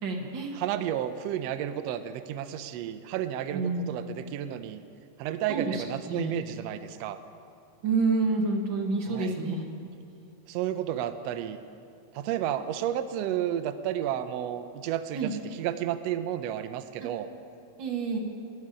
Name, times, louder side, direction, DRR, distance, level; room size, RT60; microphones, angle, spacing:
voice 1, 0.0-0.6 3.5-4.0 5.5-6.3 7.8-9.7 10.1-10.2 15.1-15.3 17.0-17.1 17.8-18.2, right 3 dB, 55° right, 2 dB, 1.3 m, -29 dB
voice 2, 0.5-4.8 5.2-7.2 9.1-9.3 10.5-11.6 12.1-17.3, right 11 dB, 80° right, 10 dB, 1.5 m, -32 dB
15.5 x 6.6 x 9.7 m, 2.5 s
omnidirectional pair, 3.6 m